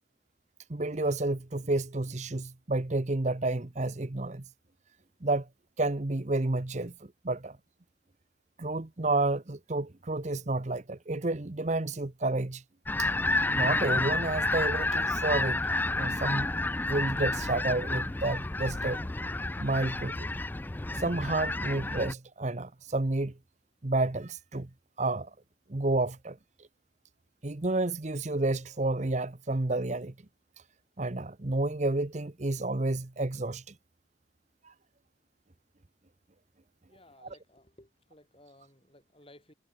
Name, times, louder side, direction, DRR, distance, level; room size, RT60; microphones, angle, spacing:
voice 1, 0.7-4.4 5.2-5.5 5.8-6.9 7.2-7.6 8.6-12.6 13.0-13.1 13.5-15.6 16.0-16.5 16.9-19.0 19.6-20.3 21.0-23.3 23.8-24.7 25.0-25.3 25.7-26.4 27.4-30.1 31.0-33.6 34.6-34.7, right 2 dB, 35° right, 0.9 m, -30 dB
sound 1, 12.9-22.1, left 2 dB, 10° left, 0.3 m, -30 dB
voice 2, 36.8-39.5, left 1 dB, 30° left, 7.1 m, -58 dB
head